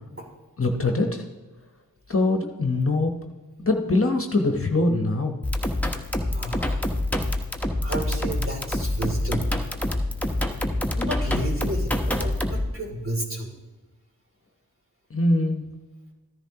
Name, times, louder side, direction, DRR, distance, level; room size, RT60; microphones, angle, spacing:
voice 1, 0.6-1.2 2.1-3.1 3.6-5.4 15.1-15.6, left 2 dB, 35° left, 4 dB, 1.1 m, -23 dB
sound 1, 5.4-12.7, left 1 dB, 5° left, 1.1 m, -26 dB
voice 2, 6.3-6.8 7.8-9.5 11.0-13.5, right 1 dB, 35° right, 0 dB, 2.9 m, -32 dB
14.0 x 10.5 x 2.9 m, 1.2 s
cardioid pair, 50°, 38 cm